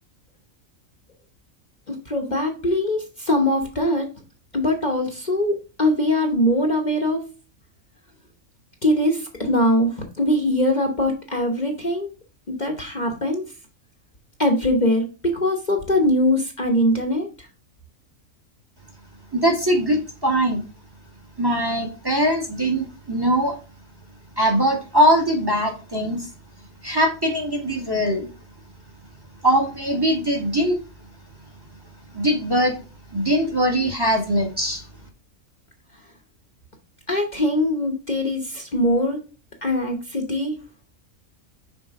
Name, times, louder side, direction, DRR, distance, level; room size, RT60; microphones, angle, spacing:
voice 1, 1.9-4.1 4.5-7.3 8.8-12.1 12.5-13.4 14.4-17.5 37.1-39.2 39.6-40.6, left 1 dB, 35° left, 3 dB, 1.1 m, -22 dB
voice 2, 19.3-20.6 21.4-23.6 24.4-26.3 26.8-28.3 29.4-30.8 32.1-32.8 33.1-34.8, equal, 15° right, 2 dB, 1.5 m, -21 dB
6.1 x 4.5 x 4.7 m, 0.32 s
omnidirectional pair, 1.4 m